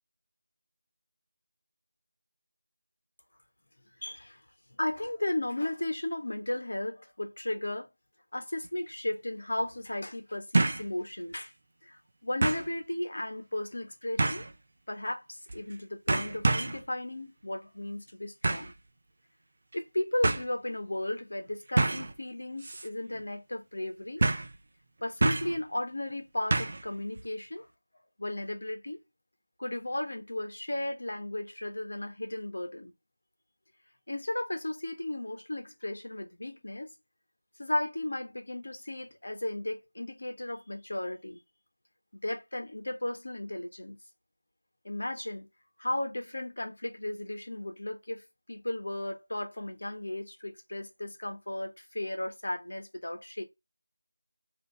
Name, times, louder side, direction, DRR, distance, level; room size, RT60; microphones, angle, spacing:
voice 1, 4.0-4.4 4.8-7.9 8.3-11.5 11.9-14.5 14.9-18.7 19.7-24.2 25.0-27.7 28.2-29.0 29.6-32.9 34.1-36.9 37.6-41.4 42.2-44.0 44.8-45.5 45.8-53.4, left 1 dB, 60° left, 1.4 m, -35 dB
sound 1, 8.6-8.7 10.5-10.9 11.3-11.4 12.4-12.7 14.2-14.5 15.5-15.7 16.1-16.8 18.4-18.7 19.7-19.8 20.2-20.4 21.8-22.1 22.6-22.9 23.1-23.2 24.2-24.5 25.2-25.6 26.5-26.9 27.2-27.3, right 2 dB, 35° right, 0.6 m, -27 dB
3.9 x 2.9 x 3.4 m
figure-of-eight pair, 170°, 0 cm